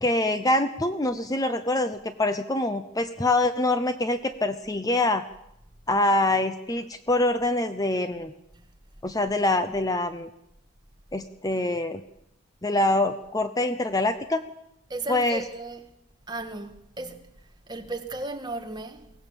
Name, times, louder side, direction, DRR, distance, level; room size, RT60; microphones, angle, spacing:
voice 1, 0.0-5.2 5.9-8.3 9.0-10.3 11.1-12.0 12.6-14.4 15.1-15.4, left 2 dB, 15° left, 0.7 m, -25 dB
voice 2, 14.9-15.9 16.3-17.2 17.7-19.1, right 2 dB, 20° right, 1.6 m, -35 dB
23.0 x 18.0 x 7.3 m
head